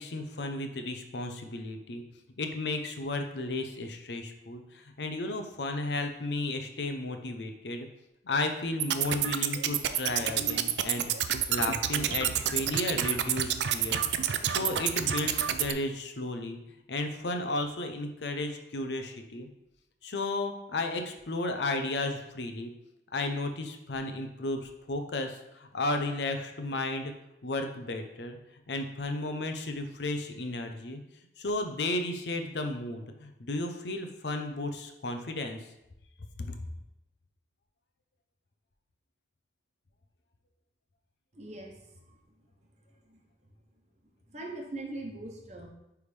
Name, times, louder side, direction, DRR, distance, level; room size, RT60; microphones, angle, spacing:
voice 1, 0.0-2.0 2.4-7.9 8.2-14.1 14.5-16.6 16.9-19.5 20.0-22.7 23.1-27.1 27.4-28.4 28.7-31.0 31.4-35.6 36.4-36.6, left 2 dB, 80° left, 5 dB, 0.7 m, -33 dB
sound 1, 8.8-15.7, right 10 dB, 80° right, 0.4 m, -29 dB
voice 2, 41.3-41.9 43.1-43.2 44.3-45.7, right 2 dB, 40° right, 1 dB, 1.0 m, -41 dB
9.4 x 3.5 x 3.3 m, 0.85 s
head